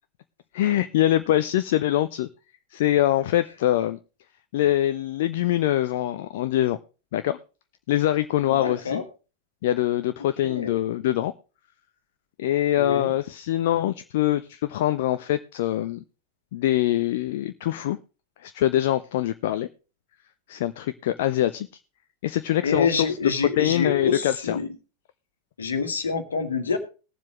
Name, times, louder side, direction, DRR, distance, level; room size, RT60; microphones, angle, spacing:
voice 1, 0.5-2.3 2.7-4.0 4.5-6.8 7.1-7.4 7.9-9.0 9.6-11.3 12.4-16.0 16.5-18.0 18.4-19.7 20.5-21.7 22.2-23.3 23.6-24.6, left 13 dB, 55° left, 12 dB, 0.5 m, -24 dB
voice 2, 8.5-9.0 10.4-10.8 12.8-13.1 22.6-24.7 25.6-26.8, left 5 dB, 70° left, 8 dB, 1.6 m, -26 dB
19.5 x 7.4 x 3.1 m, 0.33 s
figure-of-eight pair, 90°, 0 cm